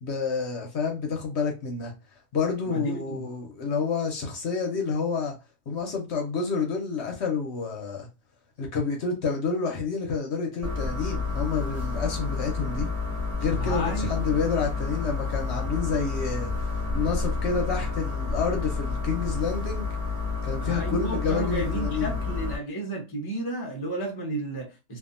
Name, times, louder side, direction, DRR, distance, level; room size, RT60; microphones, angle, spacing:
voice 1, 0.0-1.9 2.3-5.3 5.7-8.1 8.6-12.9 13.4-16.7 16.9-19.9 20.4-22.1, left 5 dB, 60° left, 0.8 m, -29 dB
voice 2, 2.7-3.3 13.6-14.3 20.6-25.0, right 2 dB, 30° left, 0.5 m, -33 dB
sound 1, 10.6-22.6, left 4 dB, 25° right, 1.3 m, -30 dB
2.7 x 2.4 x 2.4 m
omnidirectional pair, 1.5 m